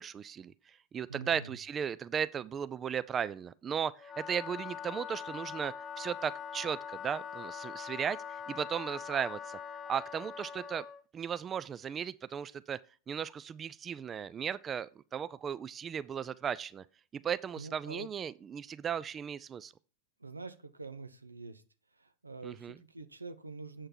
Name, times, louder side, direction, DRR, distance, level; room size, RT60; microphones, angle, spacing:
voice 1, 0.0-9.6 9.9-10.8 11.1-12.8 13.1-16.8 17.2-19.7 22.4-22.8, right 8 dB, 25° right, 0.4 m, -36 dB
voice 2, 1.1-1.5 17.6-18.1 20.2-21.6 22.0-23.9, right 3 dB, 90° right, 0.7 m, -45 dB
Wind instrument woodwind instrument, 4.0-11.0, left 7 dB, 25° left, 0.6 m, -43 dB
7.6 x 6.6 x 4.4 m
figure-of-eight pair, 90°, 0 cm